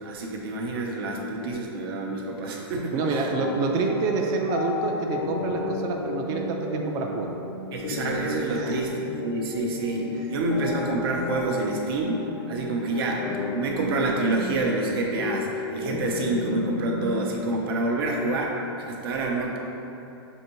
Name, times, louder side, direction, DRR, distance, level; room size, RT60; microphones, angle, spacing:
voice 1, 0.0-3.3 7.7-19.6, right 2 dB, 60° right, 0 dB, 0.7 m, -28 dB
voice 2, 2.9-7.4 8.5-8.9, right 4 dB, 25° right, 2 dB, 0.4 m, -27 dB
sound 1, 3.0-17.2, left 3 dB, 45° left, 0.4 m, -33 dB
6.4 x 2.7 x 2.9 m, 2.9 s
hypercardioid pair, 140°, 14 cm